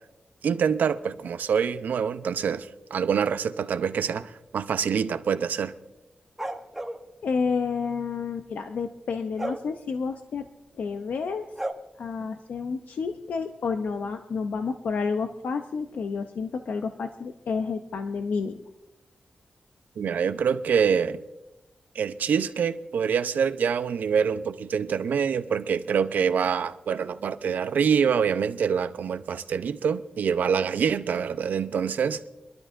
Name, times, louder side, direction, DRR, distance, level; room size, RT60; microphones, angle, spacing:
voice 1, 0.4-5.7 20.0-21.2 22.0-32.3, right 7 dB, 85° right, 0.6 m, -25 dB
sound 1, 6.4-7.0 9.4-9.6 11.6-11.7, right 1 dB, 10° right, 1.0 m, -32 dB
voice 2, 7.2-10.5 10.8-11.5 12.0-18.6, left 5 dB, 80° left, 0.6 m, -30 dB
24.0 x 12.5 x 2.6 m
wide cardioid pair, 120°, 3 cm